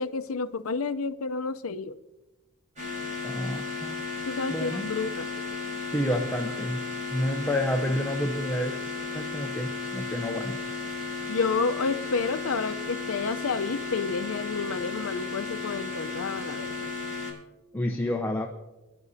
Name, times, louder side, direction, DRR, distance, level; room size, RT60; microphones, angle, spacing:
voice 1, 0.0-1.9 4.2-5.3 11.3-16.9, left 4 dB, 75° left, 0.6 m, -30 dB
sound 1, 2.8-17.3, left 3 dB, 35° right, 6.2 m, -34 dB
voice 2, 3.2-4.0 4.5-4.9 5.9-6.8 7.1-8.8 9.1-10.5 17.7-18.5, left 1 dB, 10° left, 0.7 m, -29 dB
27.5 x 11.0 x 2.7 m
head